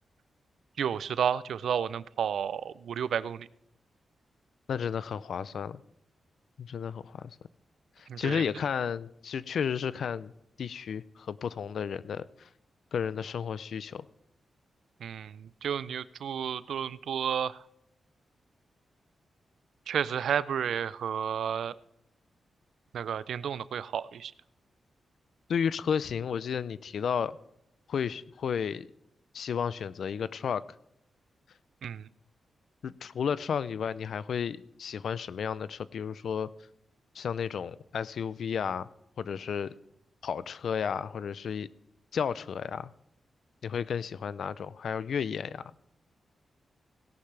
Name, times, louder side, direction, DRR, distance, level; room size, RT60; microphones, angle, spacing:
voice 1, 0.8-3.5 8.1-8.4 15.0-17.6 19.9-21.8 22.9-24.3 31.8-32.1, right 8 dB, 85° right, 18 dB, 0.4 m, -31 dB
voice 2, 4.7-5.8 6.6-7.4 8.0-10.3 10.6-12.5 12.9-14.1 25.5-27.4 27.9-28.9 29.3-30.6 32.8-36.5 37.1-38.9 39.2-39.7 40.2-41.7 42.1-42.9 43.6-45.7, left 7 dB, 70° left, 18 dB, 0.4 m, -32 dB
17.5 x 11.5 x 3.3 m, 0.79 s
wide cardioid pair, 135°, 0 cm